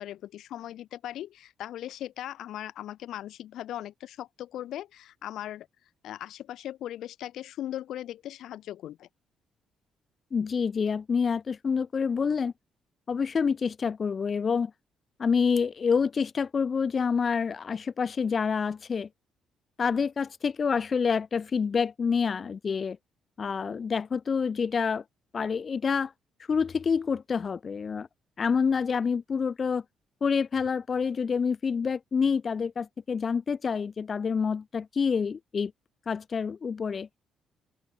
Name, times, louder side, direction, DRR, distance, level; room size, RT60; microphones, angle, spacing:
voice 1, 0.0-5.7 6.0-9.1, left 12 dB, 80° left, 4.2 m, -38 dB
voice 2, 10.3-12.5 13.1-14.7 15.2-19.1 19.8-23.0 23.4-25.0 25.3-26.1 26.5-28.1 28.4-29.8 30.2-35.7 36.1-37.1, left 6 dB, 40° left, 2.2 m, -27 dB
open air
cardioid pair, 90°, 0 cm